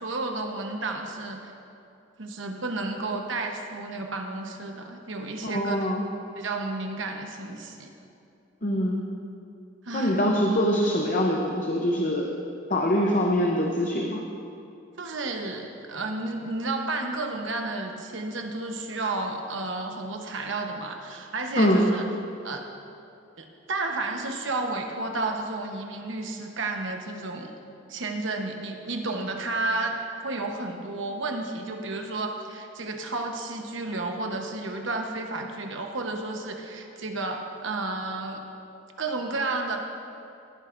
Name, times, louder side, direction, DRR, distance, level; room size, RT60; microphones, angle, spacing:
voice 1, 0.0-1.5 2.2-5.9 6.3-7.9 9.8-10.2 15.0-22.1 22.4-22.6 23.4-27.5 27.9-30.0 30.2-38.4 39.0-39.8, right 2 dB, 70° right, 3 dB, 1.0 m, -32 dB
voice 2, 5.4-6.0 8.6-9.0 9.9-12.3 12.7-14.2 21.6-21.9, equal, 40° left, -1 dB, 0.7 m, -24 dB
17.5 x 10.0 x 2.6 m, 2.7 s
head